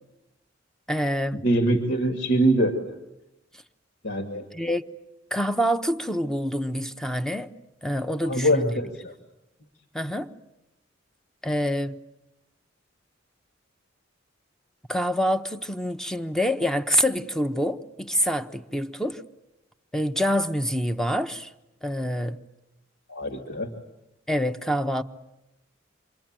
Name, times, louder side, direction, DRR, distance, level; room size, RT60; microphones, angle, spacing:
voice 1, 0.9-1.4 4.5-4.8 5.3-7.5 7.8-8.7 9.9-10.3 11.4-12.0 14.9-19.2 19.9-21.5 21.8-22.4 24.3-25.0, equal, 5° left, 1.0 m, -26 dB
voice 2, 1.4-2.8 4.0-4.4 8.2-9.1 23.1-23.7, right 1 dB, 65° left, 2.6 m, -23 dB
28.0 x 23.5 x 9.0 m
head